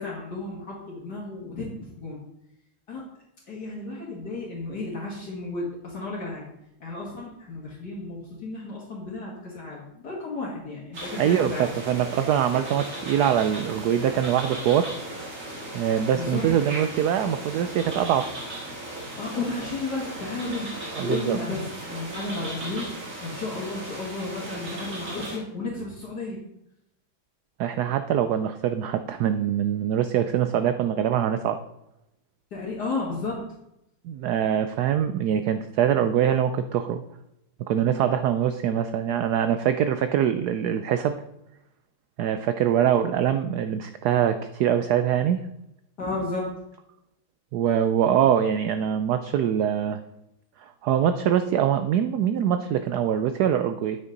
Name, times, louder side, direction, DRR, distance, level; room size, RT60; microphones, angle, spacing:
voice 1, 0.0-2.2 2.9-3.0 3.5-6.5 6.8-11.7 16.1-16.5 19.2-22.9 23.2-26.4 32.5-33.4 46.0-46.5, left 3 dB, 55° left, -5 dB, 2.3 m, -33 dB
sound 1, 10.9-25.4, right 1 dB, 40° right, 2.3 m, -37 dB
voice 2, 11.1-14.9 15.7-18.3 20.9-21.4 27.6-31.6 34.0-37.0 37.6-41.2 42.2-45.5 47.5-50.0 50.6-54.0, right 9 dB, 80° right, 9 dB, 0.9 m, -23 dB
9.2 x 8.1 x 3.9 m, 0.84 s
omnidirectional pair, 2.2 m